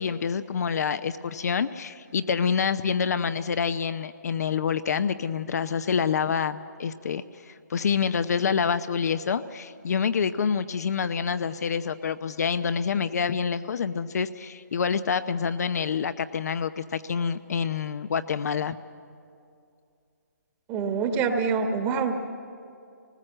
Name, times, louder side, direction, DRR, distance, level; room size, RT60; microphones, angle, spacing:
voice 1, 0.0-18.8, left 6 dB, 60° left, 11 dB, 0.7 m, -27 dB
voice 2, 20.7-22.1, right 5 dB, 20° right, 6 dB, 1.4 m, -25 dB
25.5 x 19.5 x 7.8 m, 2.5 s
hypercardioid pair, 150°, 10 cm